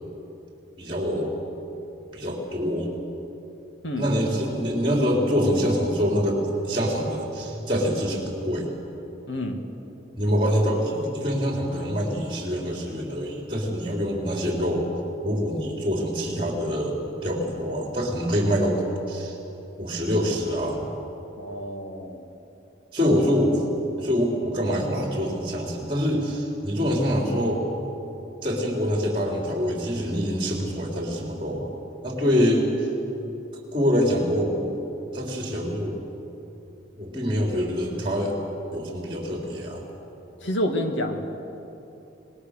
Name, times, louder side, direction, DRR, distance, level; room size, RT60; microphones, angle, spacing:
voice 1, 0.8-1.4 2.1-2.9 4.0-8.7 10.2-14.9 15.2-18.8 19.1-19.3 19.8-20.9 22.9-23.6 24.0-27.6 28.4-31.8 32.0-32.7 33.7-34.7 35.1-36.0 37.0-38.4 38.7-39.8, equal, 25° right, -1 dB, 3.8 m, -25 dB
voice 2, 9.3-9.6 21.4-22.3 40.4-41.2, left 1 dB, 90° left, 4 dB, 2.4 m, -28 dB
27.0 x 20.0 x 6.7 m, 2.9 s
head